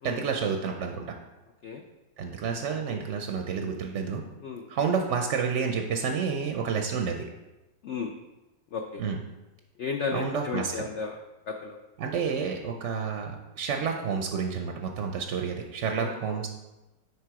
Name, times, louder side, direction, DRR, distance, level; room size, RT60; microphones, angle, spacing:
voice 1, 0.0-1.1 2.2-4.2 4.7-7.2 9.0-9.2 10.1-10.9 12.0-16.5, right 6 dB, 65° right, 3 dB, 0.7 m, -30 dB
voice 2, 8.7-9.0 9.8-11.2 11.5-11.8 15.9-16.5, left 5 dB, 90° left, 3 dB, 0.6 m, -34 dB
9.9 x 3.6 x 4.7 m, 1.0 s
omnidirectional pair, 1.9 m